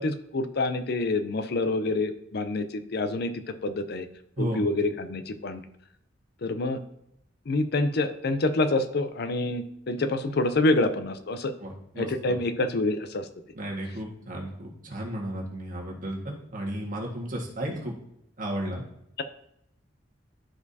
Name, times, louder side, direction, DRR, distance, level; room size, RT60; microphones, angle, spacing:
voice 1, 0.0-4.1 4.4-5.6 6.4-6.8 7.5-11.5 12.0-13.3, left 2 dB, 60° left, 10 dB, 0.5 m, -27 dB
voice 2, 11.6-12.4 13.5-17.9 18.4-18.8, right 1 dB, 45° right, -2 dB, 1.6 m, -34 dB
11.5 x 4.7 x 2.7 m, 0.78 s
head